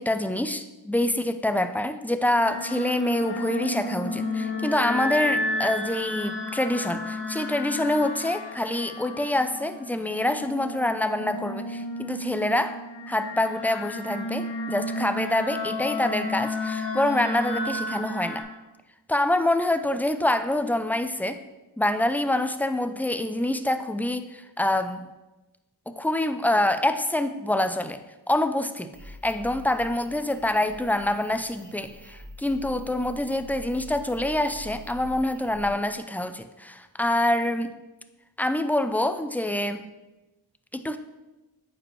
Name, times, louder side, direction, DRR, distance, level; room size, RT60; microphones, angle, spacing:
voice 1, 0.0-12.8 13.1-18.4 19.1-21.4 21.8-25.1 26.0-28.0 28.3-37.7 38.4-39.9 40.7-41.0, left 1 dB, 5° left, 9 dB, 0.4 m, -26 dB
sound 1, 2.3-18.4, left 1 dB, 80° left, 1.6 m, -32 dB
sound 2, 28.9-35.7, equal, 90° right, 2.6 m, -45 dB
8.8 x 5.2 x 3.1 m, 1.1 s
wide cardioid pair, 70°, 42 cm